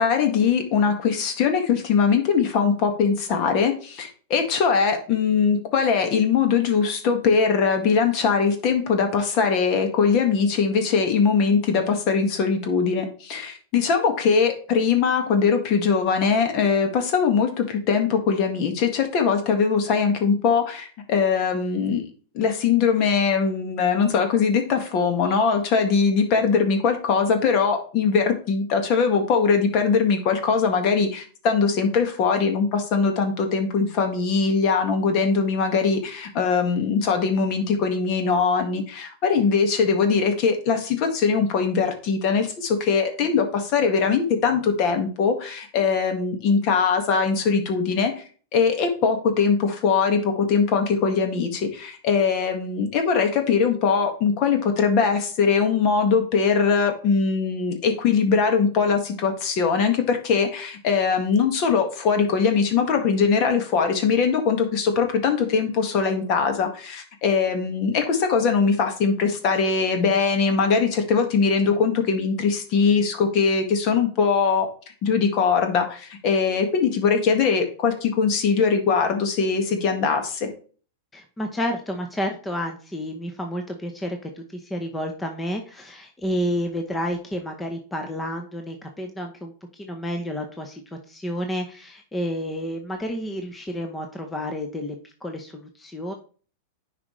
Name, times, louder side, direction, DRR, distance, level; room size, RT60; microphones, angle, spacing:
voice 1, 0.0-22.1 22.3-48.2 48.5-74.7 75.0-80.5, left 5 dB, 45° left, 5 dB, 1.8 m, -21 dB
voice 2, 81.1-96.1, equal, 10° left, 4 dB, 0.9 m, -30 dB
9.7 x 5.0 x 3.2 m, 0.41 s
hypercardioid pair, 125°, 0 cm